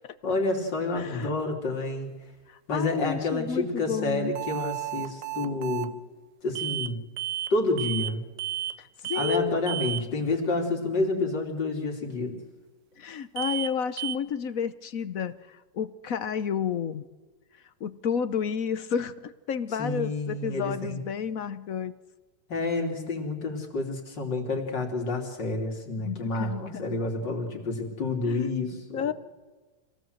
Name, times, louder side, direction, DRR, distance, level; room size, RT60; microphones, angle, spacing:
voice 1, 0.2-2.1 2.7-5.9 6.4-7.0 7.5-8.2 9.1-12.4 19.8-21.0 22.5-29.1, left 2 dB, 90° left, 1 dB, 3.7 m, -29 dB
voice 2, 0.9-1.6 2.5-4.3 8.8-9.8 13.0-17.0 17.8-21.9 26.0-26.9 28.2-28.4 28.9-29.1, left 7 dB, 60° left, 14 dB, 1.2 m, -31 dB
sound 1, 4.4-5.9 6.6-6.9 7.2-7.5 7.8-8.1 8.4-8.8 9.0-9.4 9.7-10.0 13.4-13.7 14.0-14.2, right 13 dB, 85° right, 1.6 m, -32 dB
25.5 x 17.5 x 7.9 m, 1.3 s
omnidirectional pair, 1.9 m